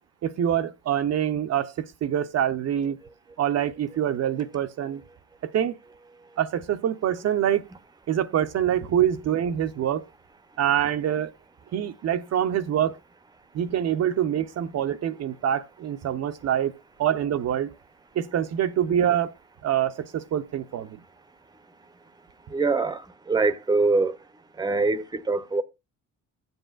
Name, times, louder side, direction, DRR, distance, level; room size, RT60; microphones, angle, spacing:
voice 1, 0.2-3.0 3.4-5.0 5.4-5.8 6.4-7.7 8.1-10.1 10.6-11.3 11.7-13.0 13.5-17.7 18.1-19.3 19.6-21.0, right 10 dB, 55° right, 0.6 m, -25 dB
voice 2, 22.5-24.2 24.6-25.6, right 3 dB, 15° right, 0.7 m, -24 dB
15.0 x 7.9 x 2.4 m
cardioid pair, 90°, 30 cm